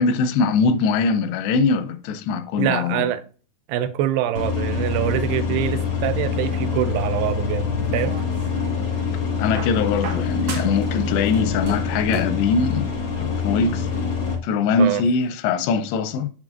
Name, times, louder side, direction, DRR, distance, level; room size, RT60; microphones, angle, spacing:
voice 1, 0.0-3.0 9.4-12.9 13.2-13.9 14.4-16.3, left 4 dB, 90° left, 2.9 m, -22 dB
voice 2, 2.6-3.2 3.7-7.7 7.9-8.2 14.8-15.0, right 11 dB, 80° right, 2.6 m, -24 dB
sound 1, 4.3-14.4, left 5 dB, 65° left, 1.2 m, -25 dB
sound 2, 7.8-8.8 9.6-10.9 11.2-12.4 13.5-13.6, right 4 dB, 65° right, 1.9 m, -36 dB
7.4 x 7.3 x 2.5 m
omnidirectional pair, 4.8 m